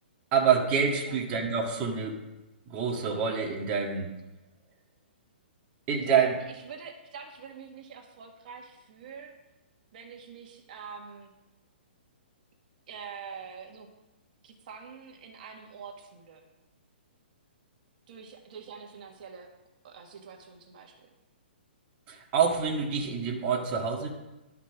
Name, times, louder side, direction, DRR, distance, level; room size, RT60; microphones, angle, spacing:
voice 1, 0.3-2.2 2.7-4.1 5.9-6.3 22.1-24.1, right 6 dB, 25° right, 0 dB, 1.8 m, -27 dB
voice 2, 6.0-9.3 9.9-11.3 12.9-13.9 14.4-16.4 18.1-19.5 19.8-20.9, right 6 dB, 50° right, 3 dB, 1.5 m, -45 dB
12.0 x 5.9 x 5.9 m, 1.0 s
hypercardioid pair, 155°, 6 cm